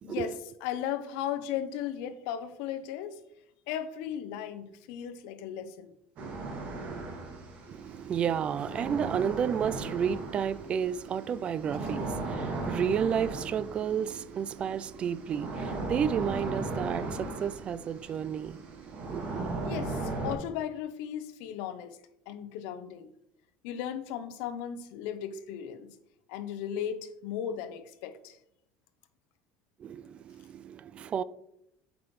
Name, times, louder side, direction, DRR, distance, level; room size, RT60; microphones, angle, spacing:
voice 1, 0.0-3.2 3.7-5.9 19.6-22.0 22.3-23.1 23.6-25.9 26.3-28.4, left 9 dB, 85° left, 0.8 m, -36 dB
sound 1, 6.2-20.3, right 2 dB, 55° right, 2.1 m, -37 dB
voice 2, 7.7-19.6 29.8-31.2, right 8 dB, 35° right, 0.3 m, -32 dB
8.4 x 6.0 x 3.2 m
cardioid pair, 130°, 3 cm